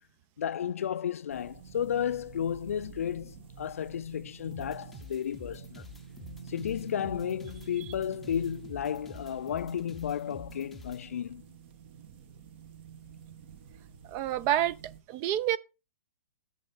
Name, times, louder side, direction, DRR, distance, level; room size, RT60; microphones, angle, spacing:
voice 1, 0.4-5.8 6.5-11.4, left 9 dB, 75° left, 0.4 m, -33 dB
sound 1, 1.3-15.0, right 6 dB, 50° right, 1.2 m, -49 dB
sound 2, 4.5-11.0, left 2 dB, ahead, 0.7 m, -48 dB
voice 2, 14.1-15.6, right 12 dB, 30° right, 0.4 m, -28 dB
7.5 x 7.0 x 4.0 m
hypercardioid pair, 145°, 8 cm